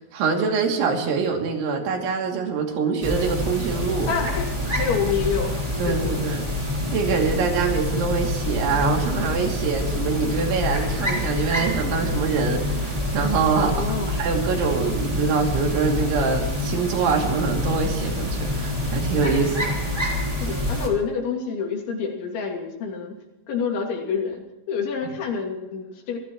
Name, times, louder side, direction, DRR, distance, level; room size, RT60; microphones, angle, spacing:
voice 1, 0.0-4.1 5.8-6.5 6.9-19.7, right 5 dB, 85° right, 2 dB, 5.0 m, -24 dB
sound 1, 3.0-20.9, left 1 dB, 10° right, 2.8 m, -26 dB
voice 2, 4.1-4.5 4.8-6.2 13.7-14.2 20.4-23.1 23.5-26.2, left 6 dB, 80° left, 1 dB, 5.0 m, -27 dB
26.0 x 16.5 x 3.1 m, 1.0 s
omnidirectional pair, 5.2 m